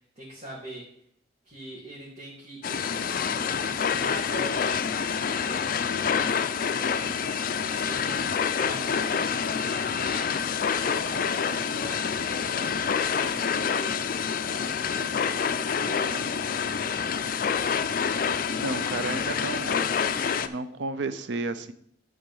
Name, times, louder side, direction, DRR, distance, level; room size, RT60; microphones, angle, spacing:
voice 1, 0.2-0.9 1.4-4.8 5.1-6.3 7.7-10.3 10.8-14.1 14.4-16.3, right 1 dB, 35° right, -7 dB, 2.2 m, -42 dB
sound 1, 2.6-20.5, left 6 dB, 50° left, 0.4 m, -27 dB
voice 2, 18.5-20.0 20.4-21.7, right 3 dB, 80° right, 12 dB, 0.6 m, -32 dB
10.5 x 3.9 x 5.4 m, 0.68 s
head